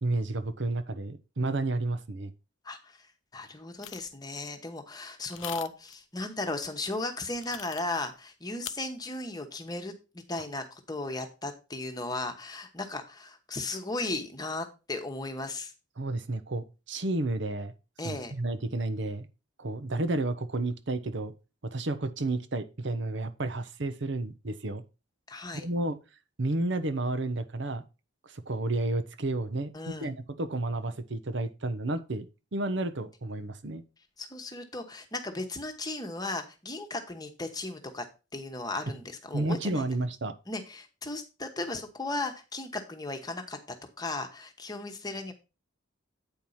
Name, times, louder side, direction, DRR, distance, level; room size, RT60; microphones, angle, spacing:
voice 1, 0.0-2.3 16.0-17.7 18.0-19.3 19.6-21.3 21.6-24.8 25.5-26.0 26.4-27.8 28.2-32.3 32.5-33.8 39.3-40.3, right 2 dB, 60° right, 0.8 m, -31 dB
voice 2, 2.6-3.0 3.3-15.7 18.0-18.3 25.3-25.6 29.7-30.1 34.2-38.0 38.3-39.8 40.5-43.6 44.0-45.3, left 2 dB, 20° left, 1.1 m, -36 dB
sound 1, 3.8-4.1 5.3-5.9 7.3-8.1 8.7-8.8, left 12 dB, 60° left, 0.5 m, -41 dB
8.8 x 4.6 x 5.5 m
head